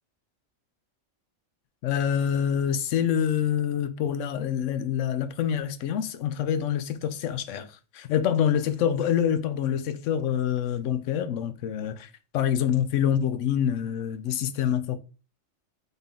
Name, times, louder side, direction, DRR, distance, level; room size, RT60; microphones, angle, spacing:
voice 1, 1.8-15.0, left 9 dB, 75° left, 0.9 m, -26 dB
4.0 x 3.6 x 3.5 m
omnidirectional pair, 1.3 m